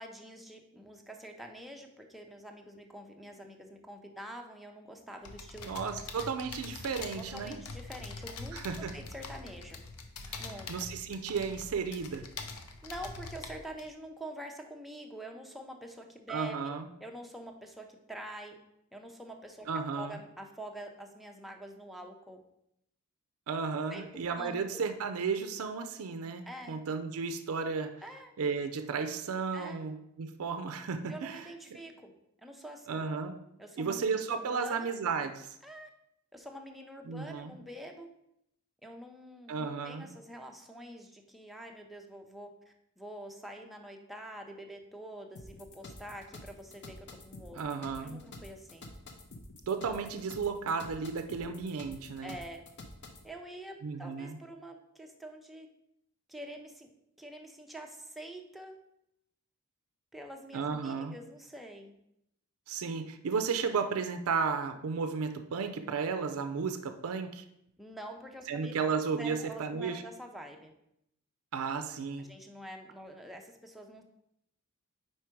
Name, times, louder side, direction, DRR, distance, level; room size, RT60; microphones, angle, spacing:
voice 1, 0.0-6.1 7.2-9.8 10.4-10.7 12.8-16.8 17.0-18.6 18.9-19.7 20.0-22.4 23.9-24.9 26.5-26.8 28.0-28.3 29.5-29.8 31.1-32.1 32.4-33.0 33.6-34.9 35.6-35.9 36.3-38.1 38.8-47.6 48.0-48.9 52.2-52.6 53.2-55.7 56.3-56.9 57.2-58.7 60.1-61.9 67.8-68.7 69.1-70.7 72.2-74.0, right 1 dB, ahead, 2 dB, 0.5 m, -46 dB
sound 1, 5.2-13.9, left 3 dB, 85° left, 0.6 m, -44 dB
voice 2, 5.6-7.6 8.5-8.9 10.3-12.3 16.3-16.9 19.7-20.2 23.5-27.9 28.4-31.8 32.9-33.4 33.8-35.5 37.1-37.5 39.5-40.1 47.6-48.2 49.7-52.4 53.8-54.4 60.5-61.1 62.7-67.4 68.5-70.0 71.5-72.3, right 5 dB, 65° right, 8 dB, 0.4 m, -34 dB
sound 2, 45.4-53.3, left 2 dB, 55° left, 0.7 m, -49 dB
4.7 x 4.4 x 4.5 m, 0.79 s
head